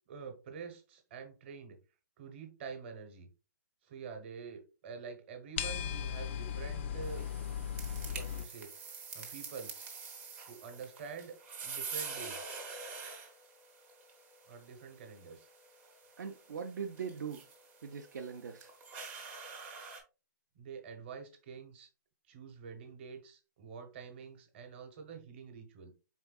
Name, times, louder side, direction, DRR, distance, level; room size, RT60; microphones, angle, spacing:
voice 1, 0.1-1.8 2.2-3.3 3.8-7.3 8.0-8.7 9.1-9.9 10.5-11.3 11.6-12.5 14.5-15.5 20.6-21.9 22.3-25.9, right 6 dB, 35° right, 0.9 m, -47 dB
sound 1, 5.6-8.4, left 8 dB, 35° left, 0.4 m, -37 dB
sound 2, 7.0-20.0, right 5 dB, 15° right, 0.5 m, -46 dB
voice 2, 16.2-17.5 17.8-18.7, right 6 dB, 65° right, 0.5 m, -41 dB
4.3 x 3.5 x 2.3 m
hypercardioid pair, 160°, 11 cm